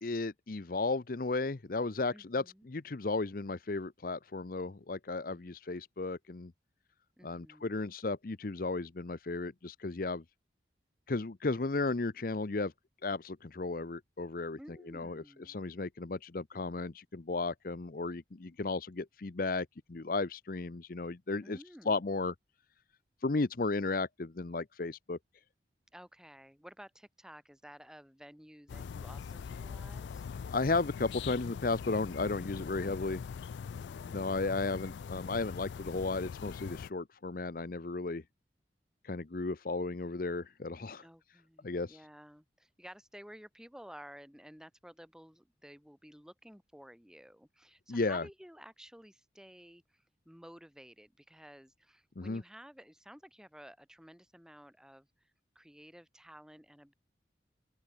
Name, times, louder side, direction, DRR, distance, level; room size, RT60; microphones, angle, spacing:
voice 1, 0.0-6.5 7.2-10.2 11.1-12.7 13.0-14.6 14.9-21.6 21.9-22.3 23.2-25.2 30.5-33.2 34.1-38.2 39.0-41.0 41.6-42.0 47.9-48.3 52.2-52.4, left 3 dB, 50° left, 0.7 m, -34 dB
voice 2, 2.1-2.7 5.3-5.4 7.2-7.9 14.6-15.6 21.4-22.0 25.9-30.2 33.7-34.7 41.0-55.3 55.5-56.9, equal, 5° right, 1.7 m, -54 dB
sound 1, 28.7-36.9, left 6 dB, 80° left, 0.3 m, -42 dB
open air
head